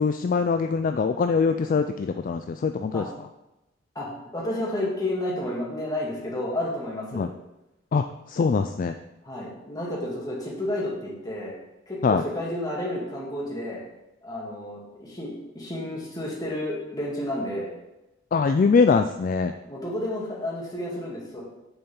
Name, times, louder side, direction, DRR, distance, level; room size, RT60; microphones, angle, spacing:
voice 1, 0.0-3.1 7.1-7.3 7.9-8.9 12.0-12.2 18.3-19.5, left 5 dB, 45° left, 8 dB, 0.3 m, -23 dB
voice 2, 3.9-7.2 9.2-11.5 11.9-13.8 14.2-17.7 19.7-21.4, left 1 dB, 20° left, -5 dB, 2.5 m, -31 dB
8.8 x 7.0 x 3.9 m, 0.95 s
head